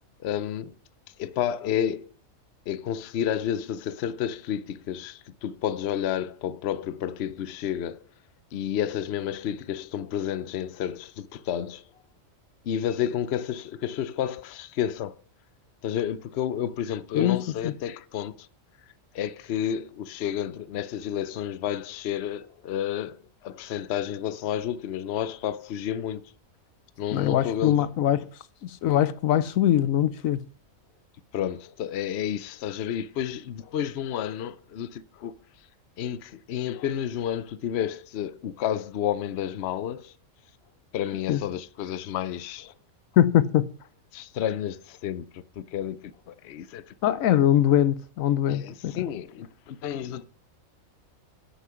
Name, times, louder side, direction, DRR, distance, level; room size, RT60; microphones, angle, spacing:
voice 1, 0.2-0.7 1.2-2.1 2.7-8.0 8.5-11.8 12.6-15.2 15.8-18.5 19.1-26.3 27.0-27.8 31.3-35.3 36.0-40.1 40.9-42.7 44.1-46.9 48.5-50.2, left 10 dB, 60° left, 0.8 m, -31 dB
voice 2, 27.1-28.3 28.6-30.4 41.3-41.4 43.2-43.7 47.0-49.0, left 11 dB, 80° left, 1.1 m, -22 dB
9.8 x 8.4 x 5.7 m
omnidirectional pair, 1.4 m